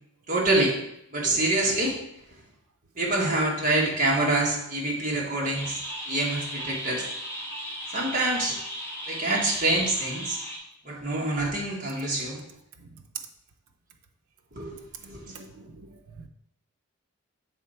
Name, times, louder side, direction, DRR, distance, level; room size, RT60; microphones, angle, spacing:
voice 1, 0.3-0.8 1.1-2.0 3.0-5.8 6.1-7.0 7.9-8.6 9.1-10.4 10.8-12.4 14.5-14.7 15.1-15.2, right 2 dB, 35° right, -3 dB, 1.6 m, -26 dB
sound 1, 5.5-10.6, equal, 10° left, 1.3 m, -36 dB
voice 2, 14.7-16.3, right 4 dB, 80° right, 4 dB, 0.6 m, -47 dB
7.2 x 3.7 x 4.3 m, 0.76 s
head